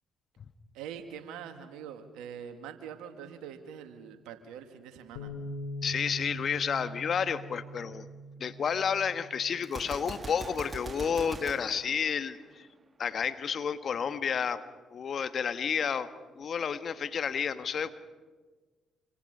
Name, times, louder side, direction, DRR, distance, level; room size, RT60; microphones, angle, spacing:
voice 1, 0.7-5.3, right 8 dB, 75° right, 7 dB, 2.2 m, -44 dB
Bass guitar, 5.2-11.4, equal, 80° left, 2.4 m, -43 dB
voice 2, 5.8-8.1 8.4-12.7 13.0-14.6 14.9-16.1 16.3-17.9, left 7 dB, 55° left, 11 dB, 1.4 m, -31 dB
Gunshot gunfire, 9.6-12.7, right 3 dB, 35° right, 1.5 m, -43 dB
27.5 x 26.0 x 5.6 m, 1.3 s
hypercardioid pair, 50°, 0 cm